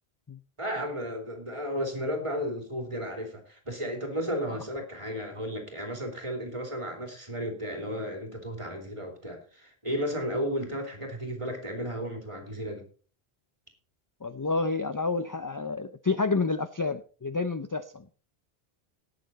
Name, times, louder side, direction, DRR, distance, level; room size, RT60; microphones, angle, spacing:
voice 1, 0.6-12.8, equal, 30° right, 4 dB, 2.9 m, -34 dB
voice 2, 14.2-18.1, left 3 dB, 30° left, 12 dB, 0.3 m, -29 dB
18.0 x 6.7 x 4.1 m, 0.39 s
omnidirectional pair, 1.1 m